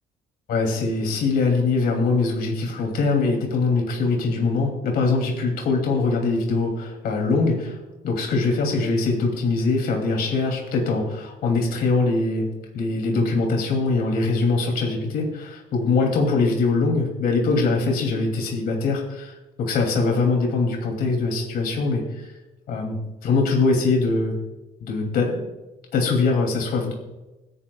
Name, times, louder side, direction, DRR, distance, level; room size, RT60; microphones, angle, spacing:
voice 1, 0.5-7.8 8.0-12.5 12.7-22.3 22.7-24.4 24.8-25.4 25.9-26.9, left 3 dB, 65° left, 1 dB, 2.6 m, -22 dB
25.5 x 9.7 x 2.3 m, 1.0 s
cardioid pair, 110°, 17 cm